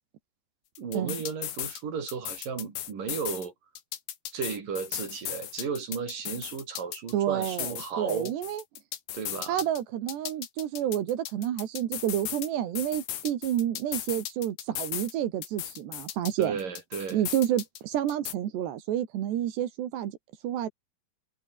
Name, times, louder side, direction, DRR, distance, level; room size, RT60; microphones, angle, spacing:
sound 1, 0.8-1.8 2.1-3.5 3.8-7.1 7.4-9.8 10.1-12.5 12.8-15.1 15.4-17.8 18.1-18.3, left 12 dB, 75° left, 4.0 m, -37 dB
voice 1, 0.8-3.5 4.3-8.3 9.1-9.6 16.4-17.2, right 6 dB, 50° right, 5.3 m, -34 dB
voice 2, 7.1-8.6 9.4-16.6 17.1-20.2 20.4-20.7, right 11 dB, 75° right, 4.1 m, -29 dB
omnidirectional pair, 5.1 m